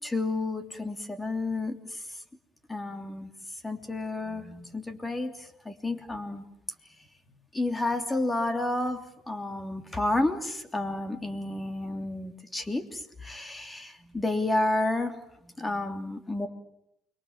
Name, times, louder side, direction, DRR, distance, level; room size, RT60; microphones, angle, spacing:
voice 1, 0.0-2.0 2.7-3.3 3.6-6.4 7.5-16.5, left 2 dB, 15° left, 6 dB, 3.1 m, -31 dB
29.5 x 23.0 x 7.4 m, 0.77 s
cardioid pair, 100°, 0 cm